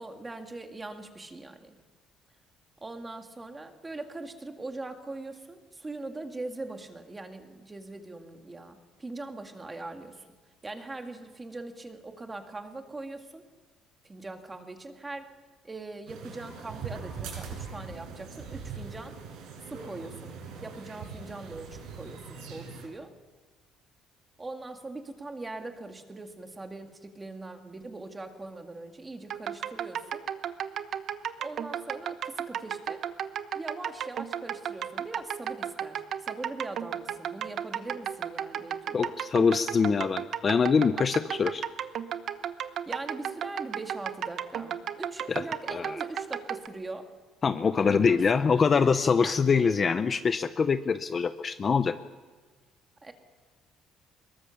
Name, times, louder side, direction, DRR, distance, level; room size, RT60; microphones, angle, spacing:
voice 1, 0.0-1.8 2.8-10.3 10.6-13.4 14.0-15.3 15.6-19.2 19.6-23.1 24.4-30.2 31.4-33.0 33.5-39.1 42.9-47.1 47.7-48.6 49.1-49.4 53.0-53.1, right 2 dB, 15° right, 5 dB, 1.9 m, -41 dB
sound 1, 16.1-22.9, right 5 dB, 80° right, 7.7 m, -41 dB
sound 2, 29.3-46.7, right 9 dB, 45° right, 1.0 m, -34 dB
voice 2, 38.9-41.6 45.3-45.4 45.7-45.9 47.4-52.0, left 5 dB, 25° left, 10 dB, 0.6 m, -24 dB
24.5 x 22.0 x 7.1 m, 1.4 s
cardioid pair, 175°, 0 cm